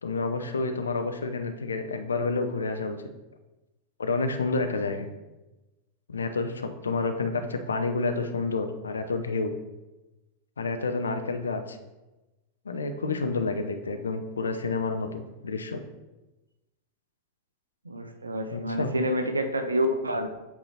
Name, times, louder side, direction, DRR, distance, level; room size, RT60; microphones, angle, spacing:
voice 1, 0.0-3.0 4.0-5.1 6.1-9.6 10.6-11.8 12.7-15.8 18.5-18.9, left 3 dB, 75° left, 7 dB, 0.5 m, -29 dB
voice 2, 17.9-20.3, equal, 80° right, 7 dB, 0.6 m, -28 dB
7.9 x 2.9 x 4.1 m, 1.1 s
figure-of-eight pair, 90°, 0 cm